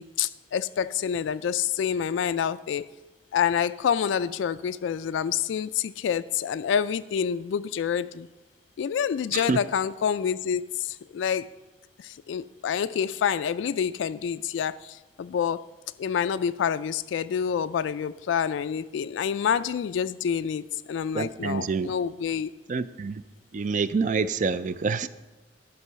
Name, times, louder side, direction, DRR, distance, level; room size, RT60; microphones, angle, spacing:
voice 1, 0.0-2.9 3.3-8.3 8.8-11.5 12.0-15.6 16.0-22.5, left 8 dB, 85° left, 13 dB, 0.3 m, -27 dB
voice 2, 21.1-21.9 22.7-23.2 23.5-25.1, right 4 dB, 40° right, 15 dB, 0.4 m, -27 dB
11.0 x 5.4 x 6.7 m, 1.1 s
head